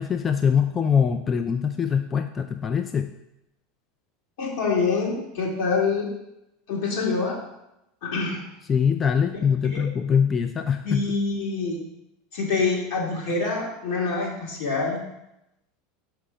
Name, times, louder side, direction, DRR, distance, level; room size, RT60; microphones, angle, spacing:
voice 1, 0.0-3.1 8.7-11.0, left 7 dB, 30° left, 7 dB, 0.4 m, -23 dB
voice 2, 4.4-6.1 6.7-7.4 8.0-8.4 9.6-9.8 10.8-11.8 12.3-15.0, left 4 dB, 70° left, -3 dB, 2.4 m, -26 dB
5.7 x 4.6 x 5.0 m, 0.89 s
hypercardioid pair, 100°, 0 cm